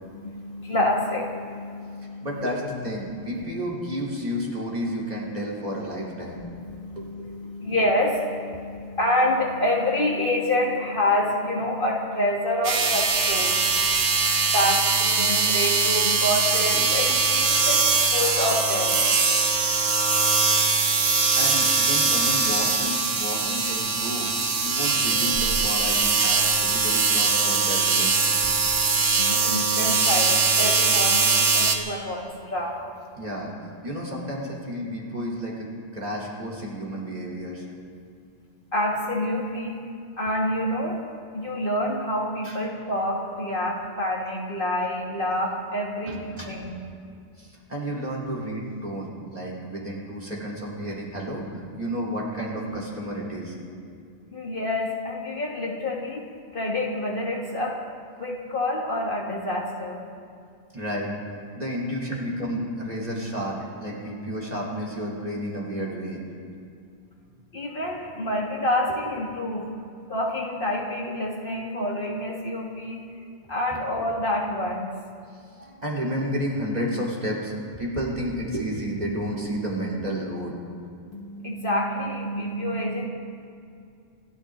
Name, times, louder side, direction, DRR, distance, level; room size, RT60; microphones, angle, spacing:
voice 1, 0.0-2.5 6.3-21.4 28.5-32.9 38.7-39.8 40.2-41.0 41.3-46.2 46.5-46.7 54.3-56.2 56.5-57.8 58.2-60.0 67.5-69.7 70.1-73.0 73.5-74.9 81.1-83.1, left 1 dB, 50° left, -2 dB, 2.0 m, -28 dB
voice 2, 2.2-6.4 7.0-7.6 21.4-24.3 24.6-28.2 33.2-33.5 33.8-37.7 42.4-42.6 46.1-46.5 47.4-51.5 51.8-53.6 60.7-61.2 61.5-66.2 68.9-69.0 71.0-71.1 75.6-80.5, equal, 35° right, -3 dB, 3.7 m, -31 dB
sound 1, 12.6-31.8, right 4 dB, 90° right, 1.6 m, -22 dB
27.5 x 13.5 x 3.8 m, 2.4 s
omnidirectional pair, 1.2 m